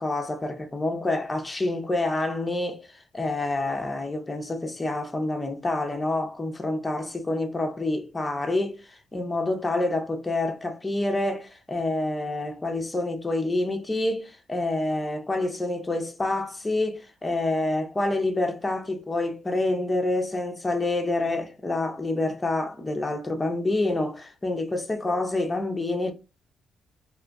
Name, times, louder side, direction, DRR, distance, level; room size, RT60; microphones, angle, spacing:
voice 1, 0.0-26.1, left 2 dB, 15° left, 0.7 m, -27 dB
3.0 x 2.4 x 3.4 m
cardioid pair, 90°, 0 cm